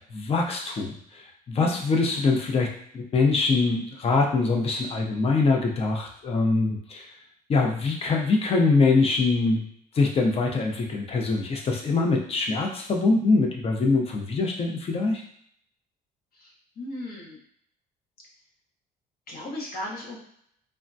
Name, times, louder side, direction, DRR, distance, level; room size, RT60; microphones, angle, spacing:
voice 1, 0.1-7.1 7.5-9.7 9.9-15.2, left 3 dB, 35° left, 1 dB, 0.6 m, -23 dB
voice 2, 16.3-17.4 19.3-20.2, left 1 dB, 60° left, -3 dB, 1.0 m, -37 dB
3.4 x 2.1 x 2.5 m, 0.67 s
cardioid pair, 110°, 17 cm